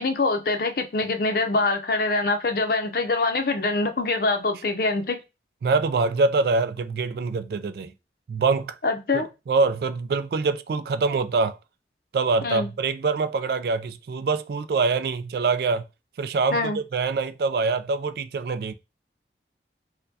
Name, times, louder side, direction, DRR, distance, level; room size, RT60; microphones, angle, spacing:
voice 1, 0.0-5.2 8.8-9.3 12.4-12.7 16.5-16.8, left 3 dB, 55° left, 0.6 m, -24 dB
voice 2, 5.6-7.9 8.3-8.8 9.1-11.6 12.1-15.8 16.2-18.7, right 4 dB, 60° right, 0.3 m, -24 dB
4.4 x 2.2 x 2.6 m
head